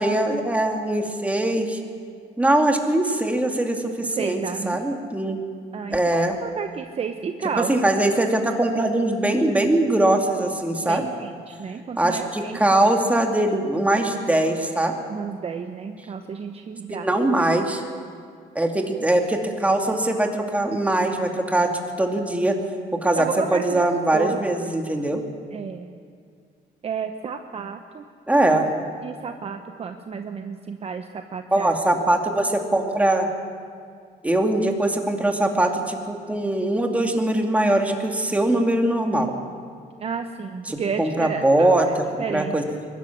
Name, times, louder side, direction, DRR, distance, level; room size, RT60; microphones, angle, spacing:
voice 1, 0.0-1.8 2.4-5.4 5.9-6.4 7.7-11.1 12.0-14.9 17.0-17.8 18.5-21.7 22.0-22.6 23.0-25.2 28.3-28.7 31.5-33.3 34.2-39.3 40.7-42.0 42.3-42.6, right 1 dB, 10° right, 2 dB, 2.5 m, -21 dB
voice 2, 4.2-4.8 5.7-8.0 10.9-12.6 15.1-17.1 23.1-24.7 25.5-25.9 26.8-28.0 29.0-32.0 40.0-42.6, right 6 dB, 35° right, 6 dB, 1.0 m, -32 dB
22.5 x 12.5 x 9.8 m, 2.2 s
cardioid pair, 110°, 17 cm